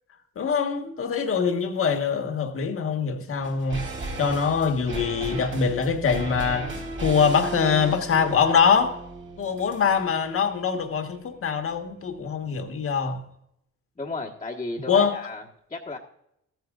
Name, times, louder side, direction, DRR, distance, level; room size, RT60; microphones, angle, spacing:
voice 1, 0.4-3.9 4.2-6.7 7.0-9.0 9.4-13.2 14.9-15.2, left 6 dB, 45° left, 1.4 m, -23 dB
sound 1, 3.4-12.8 13.1-13.2, right 2 dB, 40° right, 4.4 m, -37 dB
voice 2, 14.0-15.4 15.7-16.0, left 2 dB, 20° left, 1.4 m, -33 dB
14.5 x 9.1 x 2.4 m
cardioid pair, 90°, 30 cm